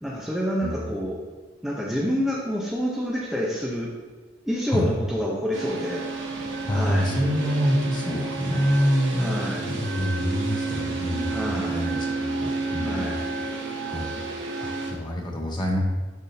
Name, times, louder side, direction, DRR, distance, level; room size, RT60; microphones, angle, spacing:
voice 1, 0.0-1.2 1.6-3.9 4.5-6.1 6.7-7.1 9.2-9.7 11.3-11.9 12.8-13.2, equal, ahead, -4 dB, 0.7 m, -28 dB
voice 2, 0.6-1.0 4.7-4.9 6.6-13.2 13.9-14.2 14.6-15.8, equal, 25° left, -1 dB, 1.0 m, -26 dB
sound 1, 5.5-14.9, right 3 dB, 90° right, 1.2 m, -31 dB
10.5 x 3.6 x 2.7 m, 1.4 s
head